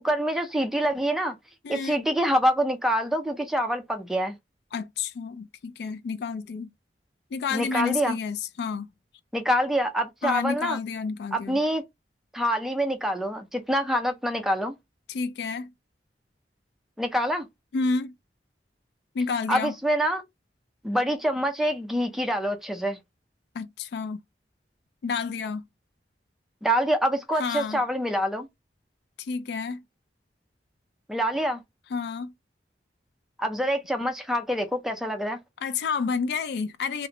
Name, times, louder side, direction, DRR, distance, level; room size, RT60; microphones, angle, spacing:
voice 1, 0.0-1.4 1.7-4.3 7.5-8.2 9.3-10.8 11.3-11.8 12.3-14.7 17.0-17.5 19.5-20.2 20.8-23.0 26.6-28.5 31.1-31.6 33.4-35.4, equal, ahead, 0.4 m, -26 dB
voice 2, 1.6-2.0 4.7-6.7 7.3-8.9 10.2-11.6 15.1-15.7 17.7-18.1 19.1-19.8 23.5-24.2 25.0-25.6 27.4-27.8 29.2-29.8 31.9-32.3 35.6-37.1, left 5 dB, 65° left, 0.3 m, -30 dB
2.5 x 2.0 x 2.7 m
head